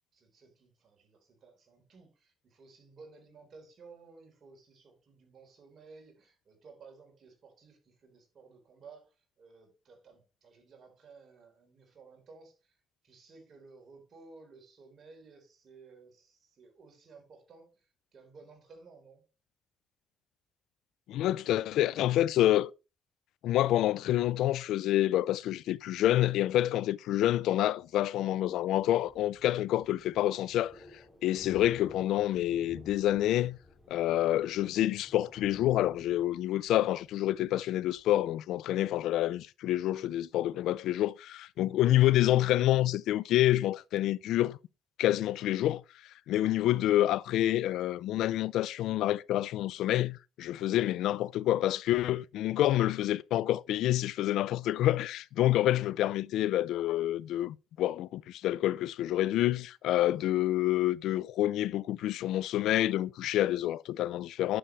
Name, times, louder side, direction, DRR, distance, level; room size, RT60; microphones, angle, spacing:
voice 1, 0.1-19.3 55.5-55.9, right 4 dB, 55° right, 3.9 m, -56 dB
voice 2, 21.1-22.7 23.4-30.7 31.2-33.6 33.9-44.6 45.0-64.6, left 13 dB, 85° left, 0.3 m, -28 dB
Thunder, 28.4-38.3, left 1 dB, 5° left, 4.1 m, -54 dB
10.0 x 6.8 x 3.2 m
cardioid pair, 90°, 0 cm